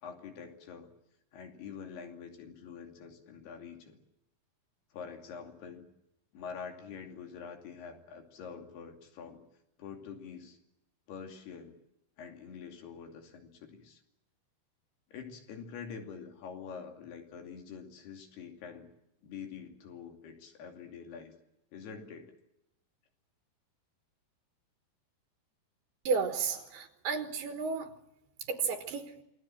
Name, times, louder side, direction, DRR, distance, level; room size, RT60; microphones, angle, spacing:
voice 1, 0.0-0.9 1.3-4.0 4.9-5.9 6.3-9.4 9.8-10.6 11.1-11.7 12.2-14.0 15.1-18.9 19.2-21.3 21.7-22.3, left 6 dB, 70° left, 4 dB, 4.7 m, -46 dB
voice 2, 26.0-27.9 28.5-29.1, right 5 dB, 75° right, 6 dB, 3.3 m, -32 dB
27.5 x 20.5 x 7.7 m, 0.84 s
omnidirectional pair, 4.8 m